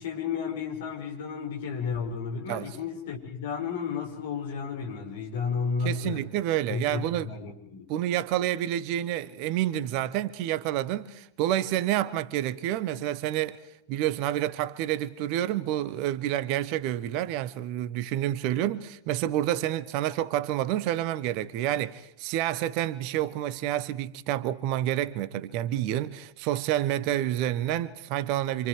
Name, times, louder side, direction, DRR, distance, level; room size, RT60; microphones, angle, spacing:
voice 1, 0.0-6.2 6.7-7.8, left 6 dB, 55° left, 5.9 m, -32 dB
voice 2, 5.8-7.3 7.9-13.6 13.9-28.7, right 12 dB, 45° right, 1.2 m, -29 dB
28.0 x 27.0 x 4.9 m
figure-of-eight pair, 90°, 0 cm